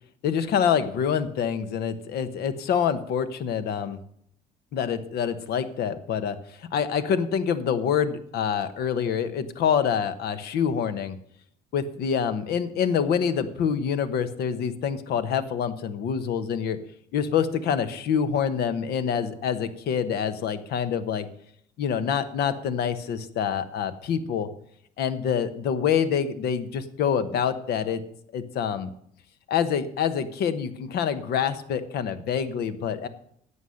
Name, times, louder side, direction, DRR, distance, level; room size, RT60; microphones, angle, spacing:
voice 1, 0.2-4.0 4.7-6.4 6.7-11.2 11.7-16.8 17.1-21.3 21.8-24.5 25.0-28.0 28.3-28.9 29.5-33.1, left 7 dB, 70° left, 11 dB, 1.1 m, -26 dB
11.0 x 8.2 x 6.4 m, 0.68 s
cardioid pair, 110°, 17 cm